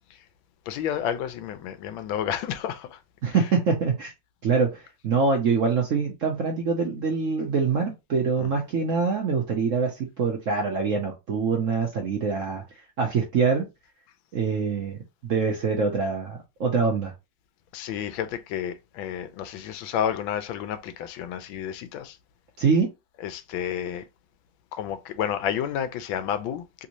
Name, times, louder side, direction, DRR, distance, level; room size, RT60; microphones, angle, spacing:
voice 1, 0.7-3.0 8.4-8.5 17.7-22.2 23.2-24.0 24.7-26.9, left 9 dB, 90° left, 1.4 m, -30 dB
voice 2, 3.2-4.1 4.4-12.6 13.0-13.7 14.3-17.1 22.6-22.9, right 5 dB, 60° right, 0.8 m, -24 dB
3.5 x 2.6 x 2.9 m
omnidirectional pair, 2.1 m